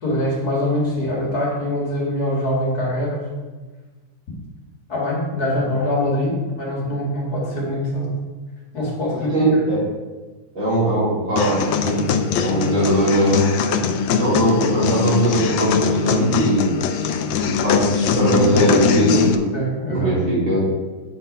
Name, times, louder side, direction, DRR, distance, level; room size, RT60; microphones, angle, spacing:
voice 1, 0.0-3.3 4.9-8.2 8.7-9.3 19.5-20.1, left 1 dB, 45° left, -4 dB, 2.5 m, -23 dB
voice 2, 9.3-9.8 10.5-12.1 12.4-13.5 14.2-16.8 17.4-19.5 19.9-20.6, equal, 65° right, -8 dB, 4.2 m, -20 dB
sound 1, 11.4-19.3, left 6 dB, 70° left, 1.3 m, -21 dB
8.7 x 5.9 x 5.4 m, 1.3 s
omnidirectional pair, 2.3 m